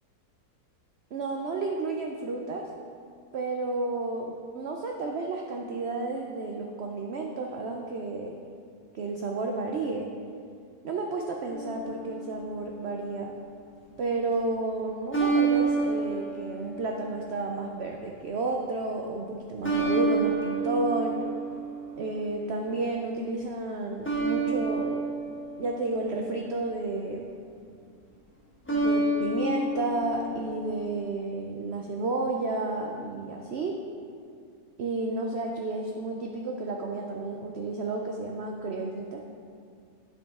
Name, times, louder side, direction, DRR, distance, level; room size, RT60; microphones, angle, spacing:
voice 1, 1.1-2.7 3.3-8.3 8.9-10.1 10.8-13.3 14.0-21.2 22.0-25.1 25.6-27.2 28.7-33.8 34.8-39.2, right 3 dB, 80° right, 1 dB, 0.5 m, -31 dB
sound 1, 11.5-12.8 15.1-17.6 19.6-22.2 24.0-26.6 28.7-31.0, right 3 dB, 10° left, 0.8 m, -29 dB
9.1 x 5.3 x 3.6 m, 2.3 s
omnidirectional pair, 1.7 m